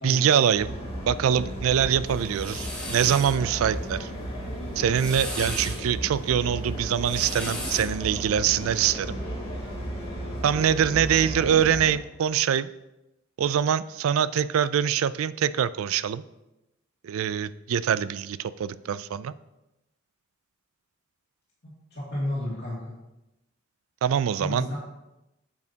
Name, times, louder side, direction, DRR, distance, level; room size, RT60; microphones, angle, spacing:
voice 1, 0.0-0.8 1.1-4.1 4.8-9.2 10.4-12.7 13.4-16.2 17.0-19.3 24.0-24.7, right 8 dB, 80° right, 16 dB, 0.3 m, -24 dB
sound 1, 0.5-12.0, equal, 30° left, 2.4 m, -34 dB
sound 2, 2.1-3.4 4.7-5.8 6.9-8.0, equal, 5° left, 1.7 m, -36 dB
voice 2, 21.6-22.9 24.4-24.8, left 1 dB, 55° left, -7 dB, 2.3 m, -32 dB
9.3 x 7.3 x 2.8 m, 0.94 s
head